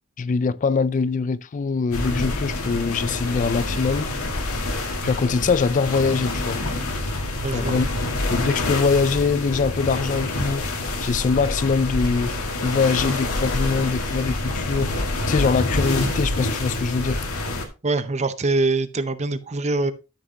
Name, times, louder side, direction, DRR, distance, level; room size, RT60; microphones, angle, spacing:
voice 1, 0.2-4.1 5.0-6.6 7.5-7.9 8.3-12.3 12.6-14.9 15.3-17.2, left 4 dB, 35° left, 0.3 m, -23 dB
sound 1, 1.9-17.6, left 2 dB, 80° left, 1.8 m, -27 dB
voice 2, 7.4-7.8 17.8-19.9, right 3 dB, 30° right, 0.6 m, -23 dB
12.5 x 6.3 x 2.8 m
head